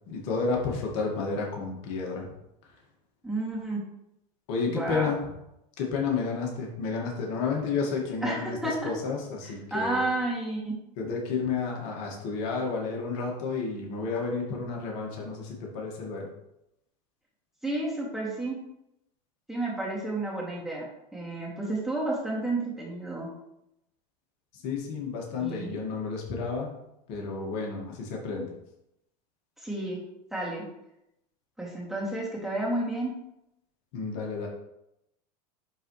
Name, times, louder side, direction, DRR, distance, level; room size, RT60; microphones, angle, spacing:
voice 1, 0.1-2.3 4.5-5.2 5.8-10.0 11.0-16.3 24.6-26.7 27.1-28.5 33.9-34.5, left 4 dB, 60° left, -1 dB, 1.9 m, -31 dB
voice 2, 3.2-3.8 4.7-5.1 8.2-8.9 9.4-10.7 17.6-18.6 19.5-20.9 21.1-23.3 25.4-25.7 29.6-30.0 30.3-30.7 31.6-33.2, right 2 dB, ahead, -5 dB, 2.4 m, -31 dB
10.5 x 4.0 x 3.2 m, 0.84 s
hypercardioid pair, 100°, 21 cm